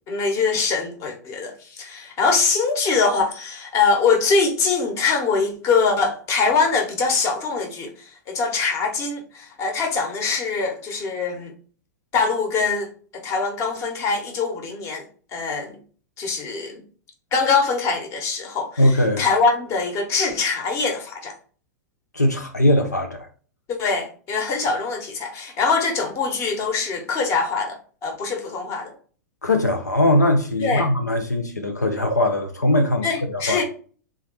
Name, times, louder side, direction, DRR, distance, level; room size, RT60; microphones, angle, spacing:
voice 1, 0.1-11.5 12.1-15.1 15.3-15.8 16.2-16.8 17.3-21.3 23.7-28.9 30.6-30.9 33.0-33.6, left 4 dB, 35° left, 1.2 m, -23 dB
voice 2, 18.8-19.2 22.1-23.3 29.4-33.6, left 1 dB, 85° left, 0.6 m, -20 dB
3.7 x 3.1 x 4.1 m
figure-of-eight pair, 100°, 9 cm